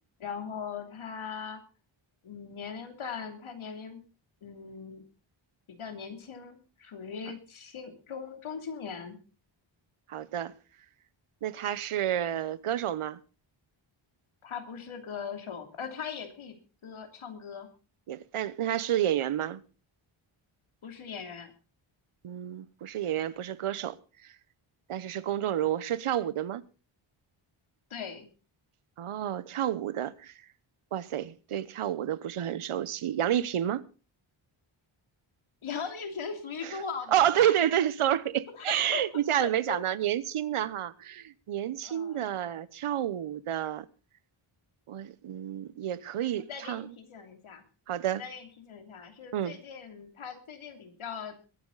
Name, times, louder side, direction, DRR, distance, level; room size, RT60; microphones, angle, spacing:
voice 1, 0.2-1.6 2.2-4.0 4.4-5.0 5.7-9.2 14.4-17.7 20.8-21.5 27.9-28.3 35.6-37.6 38.6-39.0 39.4-39.8 41.8-42.3 46.4-47.6 48.1-51.4, left 6 dB, 75° left, 3.1 m, -40 dB
voice 2, 10.1-10.5 11.4-13.2 18.1-19.6 22.2-24.0 24.2-24.3 24.9-26.6 29.0-30.3 30.9-33.8 36.6-36.8 37.1-43.8 44.9-46.9 47.9-48.2 49.3-49.6, right 11 dB, 85° right, 1.0 m, -30 dB
22.0 x 10.0 x 4.0 m
wide cardioid pair, 165°, 50 cm